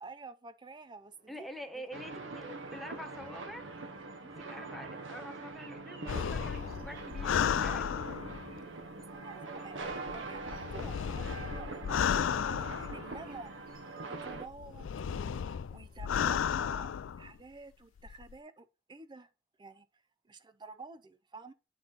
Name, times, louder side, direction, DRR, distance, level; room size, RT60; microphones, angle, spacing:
voice 1, 0.0-1.5 8.9-19.3 19.6-19.9 20.2-21.5, right 3 dB, 25° right, 0.5 m, -50 dB
sound 1, 0.8-16.7, right 3 dB, 50° right, 1.9 m, -64 dB
voice 2, 1.3-3.7 4.2-8.1, equal, ahead, 1.1 m, -46 dB
sound 2, 1.9-14.5, right 3 dB, 70° right, 1.1 m, -43 dB
sound 3, 6.1-8.6 9.8-13.5 14.3-17.3 18.0-18.3, left 8 dB, 75° left, 0.4 m, -33 dB
8.8 x 5.4 x 4.0 m
head